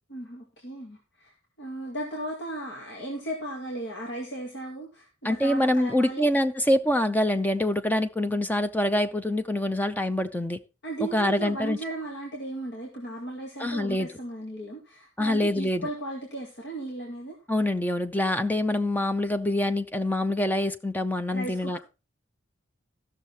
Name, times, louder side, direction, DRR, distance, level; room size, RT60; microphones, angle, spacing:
voice 1, 0.1-1.3 1.6-6.3 10.8-17.4 21.3-21.8, right 1 dB, 60° left, -1 dB, 2.1 m, -36 dB
voice 2, 5.2-10.6 11.0-11.8 13.6-14.1 15.2-15.9 17.5-21.8, left 1 dB, 10° left, 9 dB, 0.6 m, -25 dB
14.0 x 6.5 x 4.2 m, 0.30 s
head